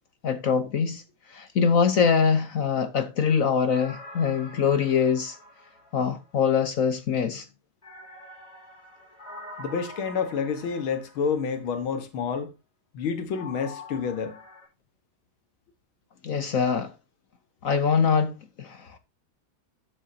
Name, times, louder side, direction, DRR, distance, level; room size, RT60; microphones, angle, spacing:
voice 1, 0.2-1.0 1.3-5.4 5.9-7.5 16.2-16.9 17.6-19.0, left 6 dB, 55° left, 0.9 m, -23 dB
sound 1, 3.7-6.5 7.8-11.6 13.3-14.7, left 2 dB, 20° left, 4.4 m, -45 dB
voice 2, 9.6-12.5 12.9-14.4, left 6 dB, 90° left, 2.2 m, -29 dB
12.5 x 7.6 x 2.8 m
omnidirectional pair, 2.2 m